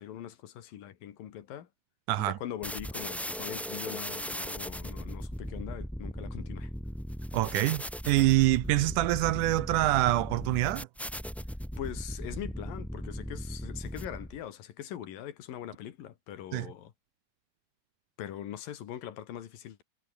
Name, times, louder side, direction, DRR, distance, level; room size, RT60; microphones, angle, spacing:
voice 1, 0.0-1.7 2.2-6.7 11.8-16.9 18.2-19.8, left 11 dB, 80° left, 3.5 m, -42 dB
voice 2, 2.1-2.4 7.3-10.9 16.5-16.7, right 17 dB, 80° right, 2.0 m, -25 dB
sound 1, 2.6-14.4, equal, ahead, 4.3 m, -38 dB
omnidirectional pair, 3.9 m